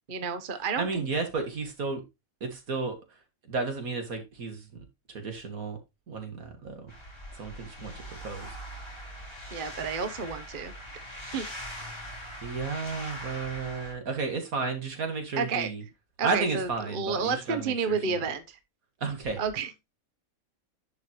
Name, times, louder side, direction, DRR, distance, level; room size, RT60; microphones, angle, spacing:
voice 1, 0.1-1.1 9.5-10.7 11.3-11.5 15.4-15.7 16.2-18.6 19.4-19.9, right 5 dB, 40° right, 1.0 m, -31 dB
voice 2, 0.8-2.0 2.4-3.0 3.5-5.8 6.1-6.9 7.3-8.6 12.4-15.8 16.2-18.2 19.0-19.4, right 4 dB, 75° right, 2.4 m, -33 dB
sound 1, 6.9-13.9, equal, 20° left, 3.3 m, -41 dB
11.0 x 5.7 x 3.1 m
omnidirectional pair, 1.5 m